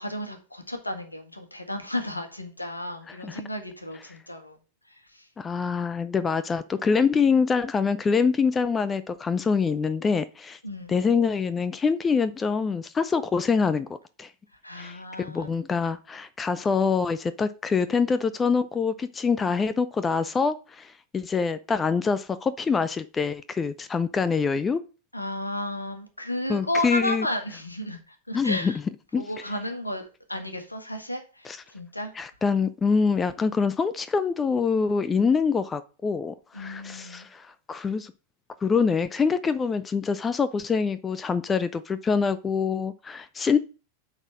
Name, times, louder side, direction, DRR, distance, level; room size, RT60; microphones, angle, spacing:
voice 1, 0.0-4.6 5.1-5.2 10.6-10.9 14.6-15.5 25.1-28.8 29.2-32.1 36.5-37.3, left 1 dB, 85° left, 1.7 m, -33 dB
voice 2, 5.4-10.6 10.9-13.9 14.2-14.3 14.8-15.0 15.3-24.8 26.5-27.3 28.3-28.7 29.1-29.2 31.4-31.6 32.2-38.1 38.6-43.6, left 5 dB, 15° left, 0.5 m, -25 dB
8.8 x 4.0 x 6.3 m
figure-of-eight pair, 90°, 0 cm